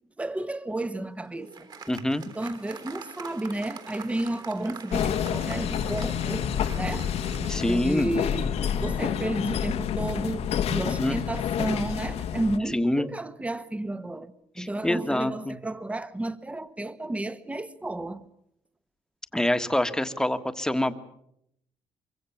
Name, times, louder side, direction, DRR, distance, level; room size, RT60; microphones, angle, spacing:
voice 1, 0.2-1.7 2.3-6.5 6.7-7.1 7.4-18.3, right 1 dB, 10° right, 1.3 m, -32 dB
Applause, 0.9-8.5, right 5 dB, 40° right, 3.6 m, -45 dB
voice 2, 1.9-2.2 7.5-8.1 10.8-11.2 12.7-13.1 14.6-15.6 19.3-20.9, left 1 dB, 5° left, 1.6 m, -26 dB
sound 1, 4.9-12.6, left 8 dB, 80° left, 1.7 m, -28 dB
24.5 x 24.0 x 7.2 m
cardioid pair, 120°, 10 cm